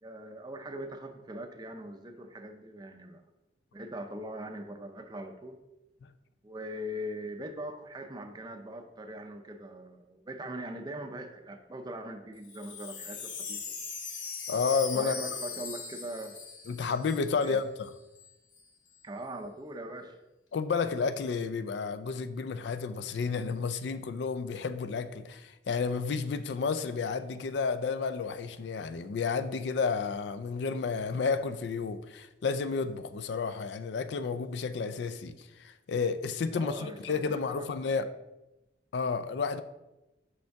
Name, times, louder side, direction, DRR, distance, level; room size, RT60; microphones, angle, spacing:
voice 1, 0.0-3.2 3.7-5.6 6.4-13.8 14.9-16.4 17.4-17.6 19.0-20.2 36.5-38.1, right 1 dB, 25° right, 0.5 m, -41 dB
Wind chime, 12.4-17.6 17.8-17.9 18.2-18.6, left 5 dB, 85° left, 1.0 m, -40 dB
voice 2, 14.5-15.1 16.7-17.9 20.5-38.1 38.9-39.6, left 5 dB, 65° left, 0.4 m, -31 dB
5.6 x 5.3 x 3.4 m
head